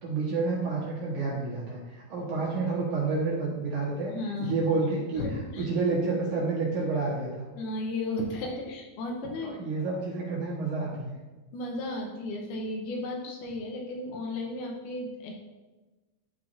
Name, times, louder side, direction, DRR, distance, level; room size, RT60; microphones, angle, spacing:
voice 1, 0.0-4.1 4.4-7.5 9.4-11.2, right 3 dB, 60° right, -5 dB, 2.3 m, -29 dB
voice 2, 4.1-4.6 5.2-5.7 7.5-9.6 11.5-15.3, left 2 dB, 75° left, 0 dB, 2.6 m, -34 dB
12.5 x 4.6 x 2.6 m, 1.2 s
omnidirectional pair, 4.7 m